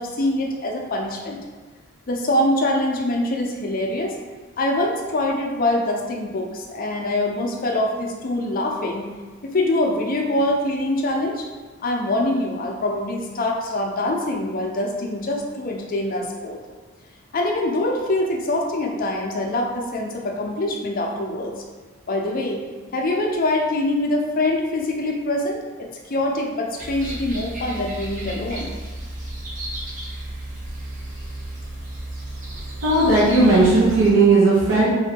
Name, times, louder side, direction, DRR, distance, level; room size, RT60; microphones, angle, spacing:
voice 1, 0.0-1.4 2.1-4.2 4.6-9.1 9.4-11.5 11.8-16.6 17.3-21.6 22.1-22.6 22.9-28.7, left 1 dB, 45° left, 0 dB, 0.5 m, -24 dB
sound 1, 26.8-34.1, right 1 dB, 40° right, 0.8 m, -33 dB
voice 2, 32.8-34.9, right 2 dB, 80° right, -7 dB, 0.9 m, -16 dB
2.9 x 2.6 x 4.3 m, 1.3 s
head